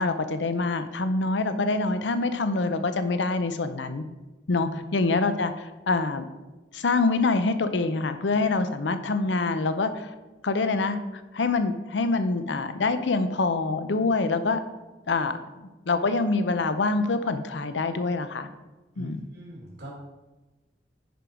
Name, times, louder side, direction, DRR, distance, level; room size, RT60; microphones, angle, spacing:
voice 1, 0.0-4.0 4.5-6.3 6.7-10.1 10.4-11.0 11.3-14.6 15.1-18.5 19.0-19.2, left 3 dB, 90° left, 10 dB, 0.7 m, -25 dB
voice 2, 18.9-19.9, equal, 80° right, -4 dB, 2.2 m, -41 dB
10.0 x 4.6 x 5.0 m, 1.1 s
head